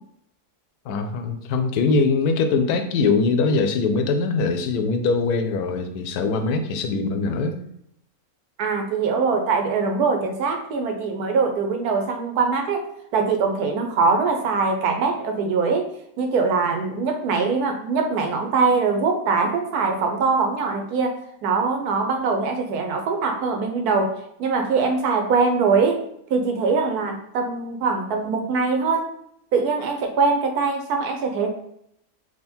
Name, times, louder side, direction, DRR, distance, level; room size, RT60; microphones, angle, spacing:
voice 1, 0.9-7.6, left 4 dB, 85° left, 7 dB, 1.1 m, -22 dB
voice 2, 8.6-12.8 13.1-15.9 16.2-24.1 24.4-26.0 26.3-29.1 29.5-31.5, right 4 dB, 90° right, 4 dB, 1.2 m, -22 dB
3.6 x 2.8 x 4.2 m, 0.73 s
omnidirectional pair, 1.6 m